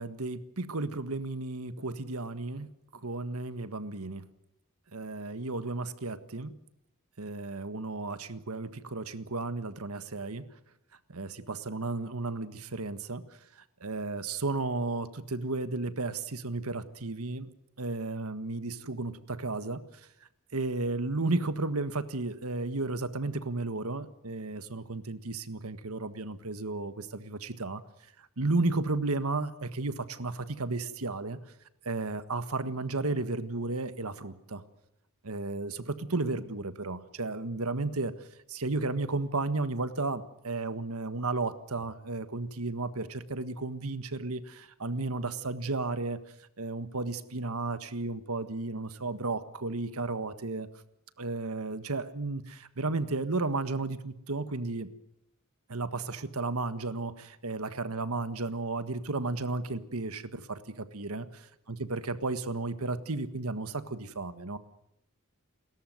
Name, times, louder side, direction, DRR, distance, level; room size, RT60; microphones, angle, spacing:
voice 1, 0.0-2.7 3.0-4.2 4.9-6.5 7.2-10.4 11.1-13.2 13.8-17.5 17.8-19.8 20.5-27.8 28.4-31.4 31.8-34.6 35.2-38.1 38.5-46.2 46.6-50.7 51.2-54.9 55.7-64.6, right 3 dB, 80° right, 12 dB, 1.6 m, -33 dB
30.0 x 14.0 x 9.4 m, 0.81 s
head